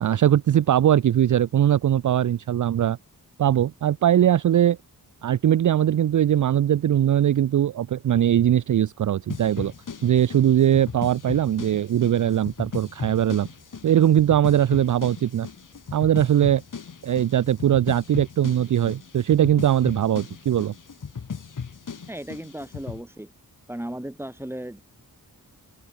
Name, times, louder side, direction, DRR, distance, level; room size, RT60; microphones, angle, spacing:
voice 1, 0.0-3.0 3.4-4.8 5.2-9.7 10.0-13.5 13.8-15.5 15.9-16.6 17.0-20.7, right 10 dB, 55° right, 0.5 m, -20 dB
sound 1, 9.3-23.0, left 6 dB, 55° left, 4.8 m, -37 dB
voice 2, 22.1-23.3 23.7-24.8, right 1 dB, 5° right, 6.6 m, -35 dB
wide cardioid pair, 175°, 37 cm